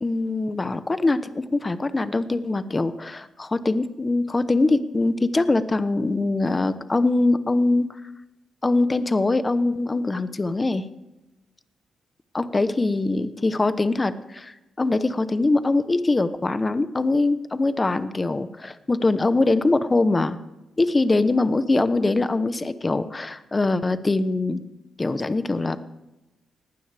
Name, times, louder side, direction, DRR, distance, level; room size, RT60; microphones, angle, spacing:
voice 1, 0.0-7.9 8.6-10.8 12.3-20.4 20.8-24.6 25.0-25.8, left 2 dB, 20° left, 12 dB, 0.9 m, -23 dB
20.0 x 15.0 x 3.5 m, 0.99 s
cardioid pair, 110°, 0 cm